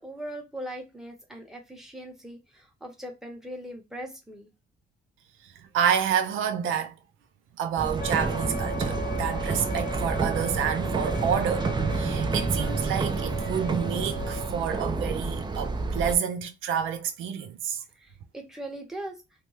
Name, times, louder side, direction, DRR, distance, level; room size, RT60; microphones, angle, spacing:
voice 1, 0.0-4.5 17.9-19.2, right 1 dB, ahead, 1.1 m, -40 dB
voice 2, 5.7-6.9 7.6-17.8, right 8 dB, 85° right, 0.5 m, -29 dB
sound 1, 7.8-16.1, right 3 dB, 20° right, 0.5 m, -29 dB
Wind instrument woodwind instrument, 8.0-14.5, right 1 dB, 50° left, 0.6 m, -37 dB
2.7 x 2.3 x 3.1 m
cardioid pair, 90°, 20 cm